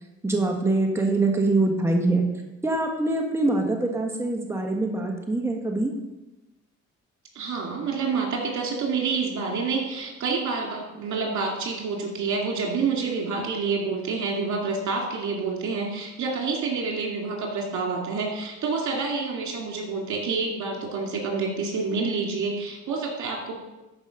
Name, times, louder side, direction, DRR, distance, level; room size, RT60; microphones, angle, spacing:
voice 1, 0.2-2.2 2.6-5.9, right 2 dB, 10° right, 1 dB, 1.5 m, -24 dB
voice 2, 7.3-23.6, right 4 dB, 70° right, 0 dB, 2.6 m, -28 dB
13.0 x 5.2 x 5.3 m, 1.0 s
cardioid pair, 90°, 30 cm